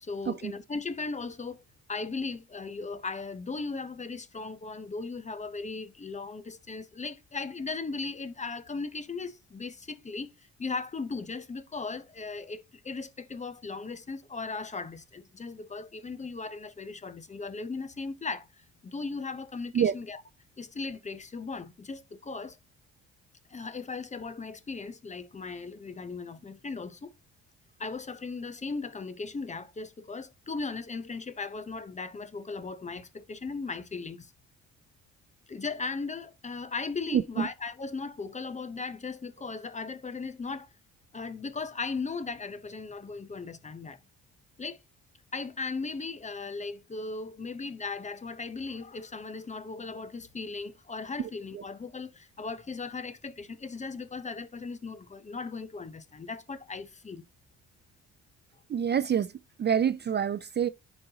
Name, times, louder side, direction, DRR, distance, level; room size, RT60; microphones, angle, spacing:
voice 1, 0.0-20.2 20.6-22.6 23.5-27.1 27.8-34.3 35.5-40.7 41.1-44.0 44.6-44.8 45.3-57.2, left 4 dB, 25° left, 0.7 m, -37 dB
voice 2, 37.1-37.5 58.7-59.3 59.6-60.7, right 8 dB, 35° right, 0.4 m, -26 dB
10.5 x 4.0 x 2.8 m
cardioid pair, 90°, 30 cm